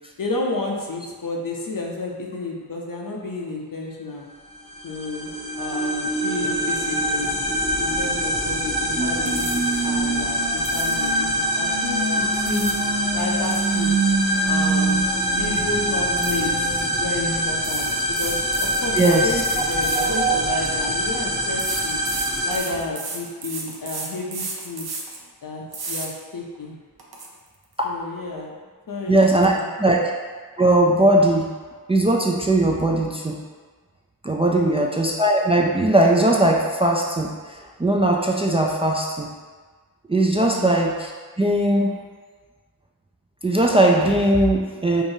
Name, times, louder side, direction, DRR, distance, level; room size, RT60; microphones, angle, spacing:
voice 1, 0.2-4.3 4.8-5.3 5.6-7.3 7.8-12.7 13.1-13.9 14.5-15.0 15.4-17.9 18.2-22.0 22.4-24.9 25.4-26.8 27.8-28.5 28.9-30.0 34.5-34.9 40.5-40.7, left 3 dB, 65° left, -1 dB, 0.7 m, -31 dB
sound 1, 4.5-22.6, equal, 20° left, 0.6 m, -24 dB
sound 2, 9.0-17.5, right 4 dB, 35° right, 0.7 m, -27 dB
sound 3, 9.3-9.8 10.6-11.1 12.2-12.9 13.2-15.1 15.3-15.6 16.2-16.8 17.6-20.7 21.6-25.2 25.7-26.1 26.6-26.7 27.0-27.3, right 3 dB, 85° right, 0.6 m, -34 dB
voice 2, 19.9-20.6 27.8-27.9 29.1-29.5 29.8-30.1 30.6-31.5 31.9-33.4 34.2-39.3 40.1-41.1 41.4-41.9 43.4-45.0, right 1 dB, 15° right, -1 dB, 0.3 m, -19 dB
4.7 x 2.7 x 2.7 m, 1.5 s
wide cardioid pair, 60°, 36 cm